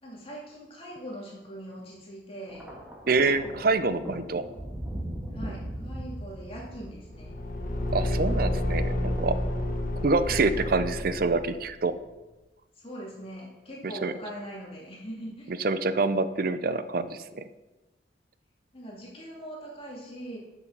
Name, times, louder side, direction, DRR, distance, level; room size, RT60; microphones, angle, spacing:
voice 1, 0.0-2.7 5.3-7.3 12.8-15.5 18.7-20.4, equal, 30° left, -4 dB, 2.6 m, -41 dB
Thunder, 2.5-8.8 9.8-10.1, right 1 dB, 5° right, 1.8 m, -40 dB
voice 2, 3.1-4.4 7.9-9.4 10.0-11.9 13.8-14.1 15.6-17.4, right 3 dB, 50° right, 12 dB, 0.6 m, -26 dB
Car / Engine, 7.1-11.6, left 1 dB, 50° left, 1.5 m, -29 dB
9.8 x 6.5 x 6.1 m, 1.1 s
head